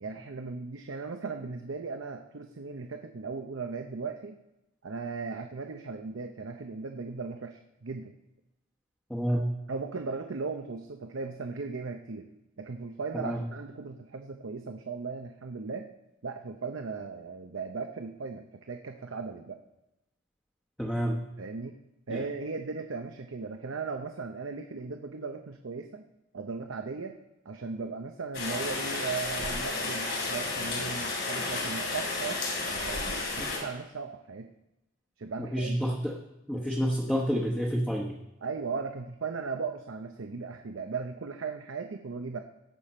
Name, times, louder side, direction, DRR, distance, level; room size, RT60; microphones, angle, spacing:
voice 1, 0.0-4.4 4.8-8.1 9.7-12.3 12.6-15.9 16.2-19.6 21.4-21.8 22.1-26.0 26.3-27.2 27.4-34.5 35.2-35.8 38.4-42.4, right 4 dB, 90° right, 5 dB, 0.7 m, -37 dB
voice 2, 9.1-9.4 13.1-13.4 20.8-21.2 22.1-22.2 33.4-33.5 35.4-36.1 36.5-38.2, equal, 5° left, -3 dB, 1.0 m, -29 dB
Rain, 28.3-33.6, left 3 dB, 60° left, 3.4 m, -32 dB
17.5 x 6.7 x 4.3 m, 0.92 s
head